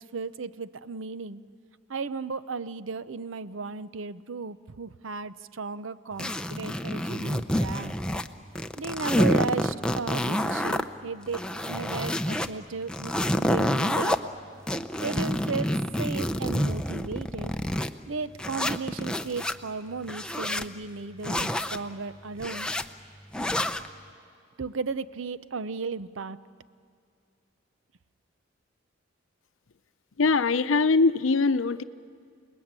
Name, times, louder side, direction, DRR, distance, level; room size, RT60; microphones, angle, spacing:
voice 1, 0.0-1.4 1.9-8.0 8.8-14.2 15.0-17.5 18.1-22.7 24.6-26.4, right 4 dB, 75° right, 15 dB, 0.7 m, -35 dB
sound 1, 6.2-8.3 8.6-10.8 11.3-12.5 12.9-14.2 14.7-17.9 18.4-19.5 20.0-20.7 21.2-21.8 22.4-22.8 23.3-23.9, equal, 5° left, 0.6 m, -28 dB
voice 2, 30.2-31.8, left 4 dB, 80° left, 13 dB, 0.7 m, -22 dB
28.5 x 20.0 x 8.9 m, 2.3 s
head